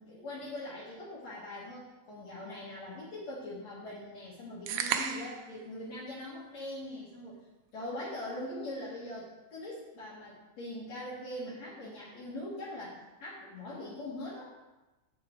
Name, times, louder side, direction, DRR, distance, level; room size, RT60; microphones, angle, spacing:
voice 1, 0.0-7.4 7.7-14.5, left 1 dB, 65° left, -8 dB, 2.8 m, -42 dB
sound 1, 4.7-5.5, right 8 dB, 80° right, 1.3 m, -32 dB
9.1 x 5.7 x 4.4 m, 1.1 s
omnidirectional pair, 3.3 m